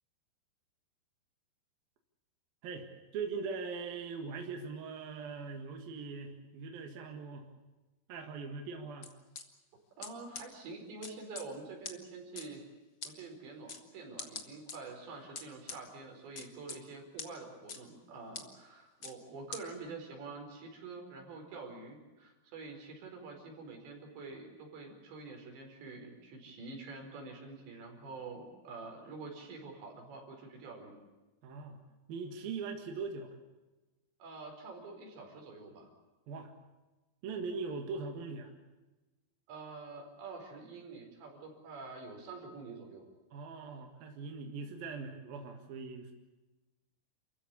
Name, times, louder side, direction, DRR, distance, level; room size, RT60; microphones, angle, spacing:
voice 1, 3.1-7.5 8.1-9.1 31.4-31.8 32.1-33.4 36.3-36.5 37.2-38.5 43.3-46.1, right 4 dB, 60° right, 3 dB, 3.4 m, -41 dB
sound 1, 9.0-9.4 10.0-10.1 10.3-10.4 11.0-11.4 11.8-11.9 12.4-12.5 13.0-13.1 13.7-13.8 14.2-14.8 15.4-15.8 16.4-16.8 17.2-17.3 17.7-17.8 18.3-18.4 19.0-19.1 19.5-19.6, left 5 dB, 45° left, 1.4 m, -42 dB
voice 2, 10.0-12.6 13.0-31.0 34.2-35.9 37.3-37.4 39.5-43.1, right 3 dB, 80° right, 2 dB, 6.9 m, -47 dB
29.0 x 15.5 x 8.5 m, 1.1 s
omnidirectional pair, 5.0 m